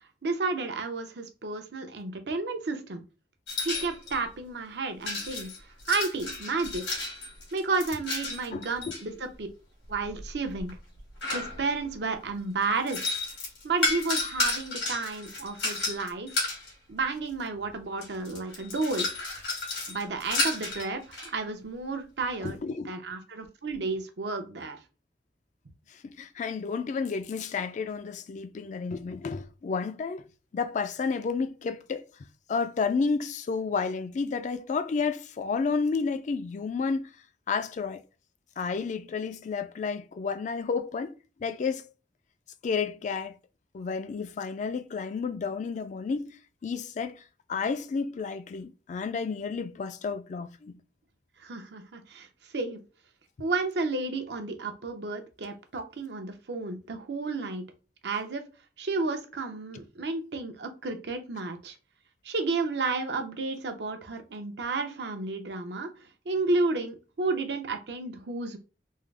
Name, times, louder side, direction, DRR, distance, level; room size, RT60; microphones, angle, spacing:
voice 1, 0.2-3.0 3.6-5.5 5.9-6.9 7.5-9.5 9.9-10.8 11.3-13.0 13.6-16.3 16.9-19.1 19.9-22.6 22.8-24.8 51.4-52.3 52.5-52.8 53.4-57.7 58.0-58.4 58.8-61.7 62.2-65.9 66.3-68.6, right 3 dB, 70° right, 0.6 m, -32 dB
sound 1, 3.5-4.2 5.0-9.0 9.9-11.9 12.6-16.7 17.6-17.7 18.0-21.3, left 2 dB, 90° left, 1.8 m, -32 dB
voice 2, 8.5-8.9 22.4-22.9 26.0-30.2 30.5-32.0 32.5-37.1 37.5-38.0 38.6-41.1 41.4-41.9 42.6-43.4 43.7-46.3 46.6-47.2 47.5-50.8, left 5 dB, 45° left, 0.3 m, -31 dB
3.6 x 2.0 x 3.2 m
head